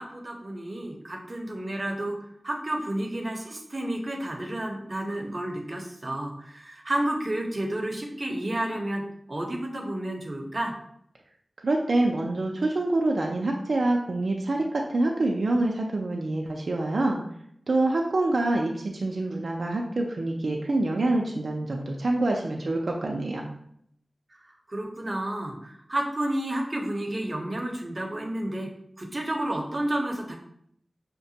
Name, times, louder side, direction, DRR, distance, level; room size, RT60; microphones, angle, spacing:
voice 1, 0.0-2.2 2.4-9.0 9.3-10.7 24.7-28.7 29.0-30.3, right 1 dB, 35° right, 1 dB, 0.7 m, -31 dB
voice 2, 11.6-17.2 17.7-23.5, right 2 dB, 75° right, 0 dB, 0.4 m, -26 dB
5.7 x 2.2 x 2.7 m, 0.69 s
wide cardioid pair, 80°, 0 cm